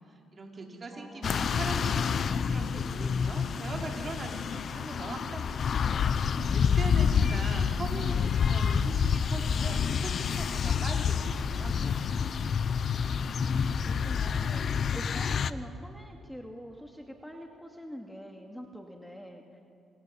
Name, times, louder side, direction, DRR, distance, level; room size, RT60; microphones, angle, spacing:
voice 1, 0.1-5.8 6.5-12.1, right 3 dB, 35° right, 1 dB, 5.1 m, -41 dB
voice 2, 0.9-1.6 13.1-13.2 13.5-19.6, equal, 5° left, 2 dB, 2.5 m, -45 dB
sound 1, 1.2-15.5, left 6 dB, 55° left, 0.9 m, -28 dB
27.5 x 27.5 x 7.2 m, 2.4 s
cardioid pair, 90°, 0 cm